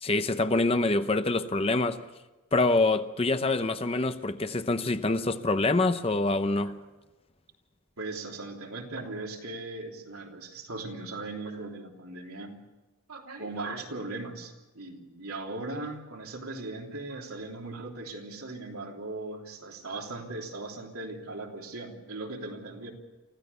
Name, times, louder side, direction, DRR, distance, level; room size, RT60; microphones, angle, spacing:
voice 1, 0.0-2.0 2.5-6.7, left 2 dB, 25° left, 0.8 m, -25 dB
voice 2, 8.0-12.6 13.1-22.9, right 2 dB, 80° right, 3.3 m, -38 dB
25.0 x 15.5 x 6.9 m
head